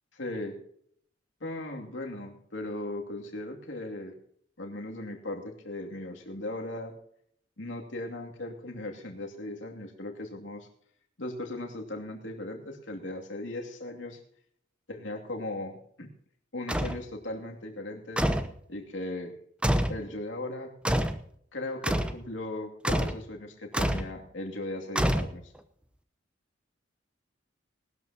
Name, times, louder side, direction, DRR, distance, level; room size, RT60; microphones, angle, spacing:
voice 1, 0.1-0.6 1.4-4.1 4.6-6.9 7.6-10.7 11.2-14.2 14.9-16.1 16.5-18.3 18.7-19.3 19.9-20.7 21.5-25.5, left 1 dB, 80° left, 2 dB, 2.6 m, -37 dB
sound 1, 16.7-17.0 18.2-18.6 19.6-20.0 20.8-21.2 21.8-22.2 22.8-23.2 23.7-24.1 25.0-25.6, equal, 5° right, 0.8 m, -27 dB
19.5 x 12.5 x 2.9 m, 0.65 s
head